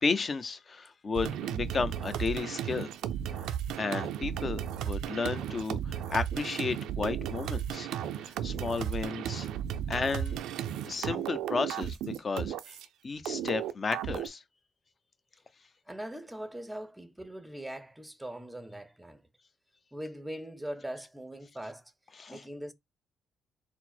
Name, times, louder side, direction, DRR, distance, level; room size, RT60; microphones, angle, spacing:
voice 1, 0.0-2.9 3.3-7.9 8.1-9.5 9.9-10.4 10.9-12.8 13.0-14.4 22.2-22.5, left 4 dB, 40° left, 0.6 m, -33 dB
sound 1, 1.1-12.9 13.3-14.3, right 9 dB, 85° right, 0.4 m, -34 dB
voice 2, 15.9-19.2 19.9-21.9 22.3-22.7, right 1 dB, 10° right, 0.6 m, -41 dB
4.2 x 2.0 x 4.3 m
cardioid pair, 90°, 0 cm